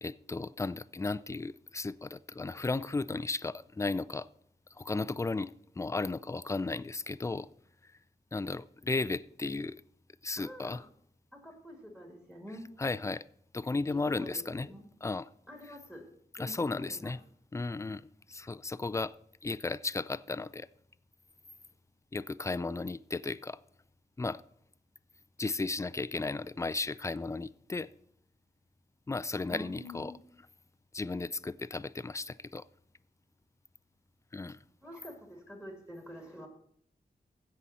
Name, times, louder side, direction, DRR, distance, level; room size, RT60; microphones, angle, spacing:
voice 1, 0.0-4.3 4.8-7.5 8.3-9.8 10.2-10.8 12.8-13.2 13.5-14.7 15.0-15.3 16.4-17.2 17.5-19.1 19.4-20.7 22.1-23.6 24.2-24.4 25.4-27.9 29.1-30.1 30.9-32.6 34.3-34.6, left 3 dB, 20° left, 0.4 m, -35 dB
voice 2, 10.4-10.9 11.3-12.6 13.9-14.8 15.5-16.0 16.4-17.2 29.3-30.1 34.8-36.5, equal, 5° right, 2.5 m, -47 dB
15.5 x 5.6 x 4.2 m
wide cardioid pair, 80°, 16 cm